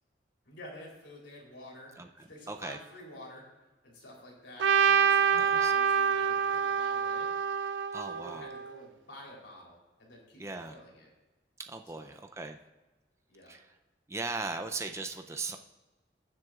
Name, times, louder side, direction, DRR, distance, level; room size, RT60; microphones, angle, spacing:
voice 1, 0.4-1.9 2.3-3.4 3.8-7.3 8.1-11.1 11.9-12.2 13.3-13.5, left 1 dB, 85° left, -2 dB, 3.5 m, -49 dB
voice 2, 2.0-2.8 5.4-5.7 7.9-8.5 10.4-10.7 11.6-12.6 13.5-13.7 14.1-15.6, right 3 dB, 15° right, 6 dB, 0.4 m, -38 dB
Trumpet, 4.6-8.8, right 7 dB, 80° right, 0.5 m, -27 dB
19.5 x 7.5 x 2.4 m, 1.1 s
head